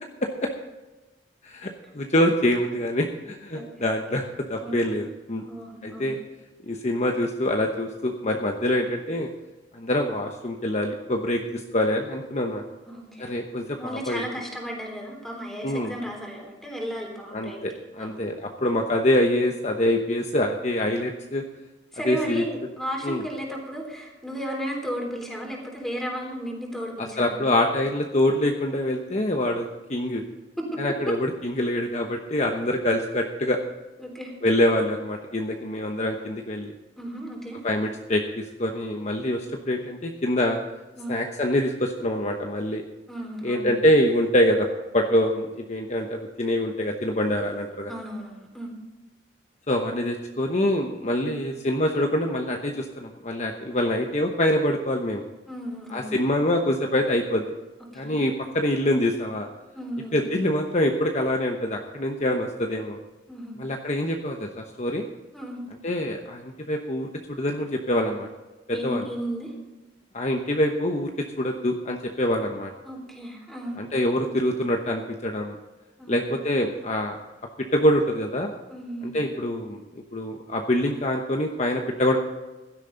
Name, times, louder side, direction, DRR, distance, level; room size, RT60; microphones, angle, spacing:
voice 1, 1.4-5.5 5.8-6.2 6.6-9.3 9.7-12.6 13.2-14.2 15.6-15.9 17.3-21.4 22.0-22.4 23.0-23.2 27.0-30.2 30.8-33.6 34.4-36.7 37.6-40.6 41.1-42.8 43.4-44.7 44.9-47.9 49.7-55.2 55.9-57.4 57.9-59.5 60.1-63.0 63.6-65.1 65.8-68.3 68.7-69.1 70.1-72.7 73.8-75.6 76.1-77.2 77.7-78.5 79.1-79.8 80.1-82.2, left 1 dB, 40° left, 3 dB, 1.0 m, -25 dB
voice 2, 5.5-6.1 12.9-13.3 13.7-17.6 18.0-18.2 21.9-27.4 30.6-30.8 34.0-34.4 37.0-37.6 41.0-41.1 43.1-43.7 47.9-48.7 51.1-51.3 55.5-56.2 57.9-58.2 59.7-60.1 63.3-63.5 65.3-65.6 68.7-69.5 72.8-73.8 76.0-76.2 78.7-79.2, equal, ahead, 0 dB, 3.4 m, -34 dB
16.0 x 12.5 x 4.0 m, 1.1 s
head